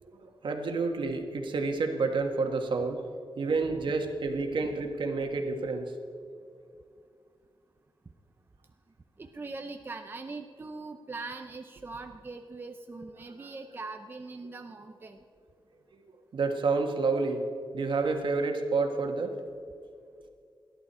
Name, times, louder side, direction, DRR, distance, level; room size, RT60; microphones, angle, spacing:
voice 1, 0.1-3.0 3.4-5.9 16.3-17.4 17.7-19.3, right 3 dB, 65° right, 4 dB, 1.6 m, -29 dB
voice 2, 9.2-15.2, right 3 dB, 25° right, 5 dB, 0.6 m, -41 dB
30.0 x 11.0 x 4.4 m, 2.3 s
wide cardioid pair, 170°, 9 cm